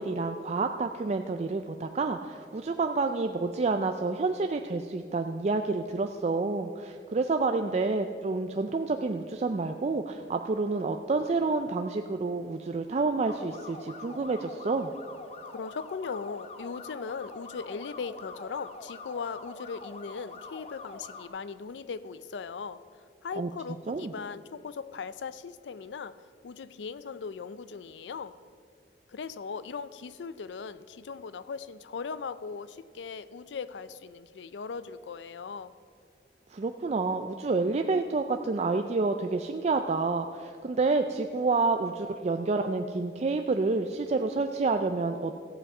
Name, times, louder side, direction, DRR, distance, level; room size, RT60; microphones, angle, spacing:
voice 1, 0.0-14.9 23.4-23.5 23.9-24.1 36.5-45.4, right 3 dB, 40° right, 6 dB, 0.4 m, -29 dB
sound 1, 13.2-21.3, left 3 dB, 35° left, 0.8 m, -45 dB
voice 2, 15.5-22.8 23.2-26.1 26.4-28.3 29.1-35.7, left 5 dB, 80° left, 15 dB, 0.4 m, -39 dB
14.5 x 7.9 x 5.4 m, 2.2 s
head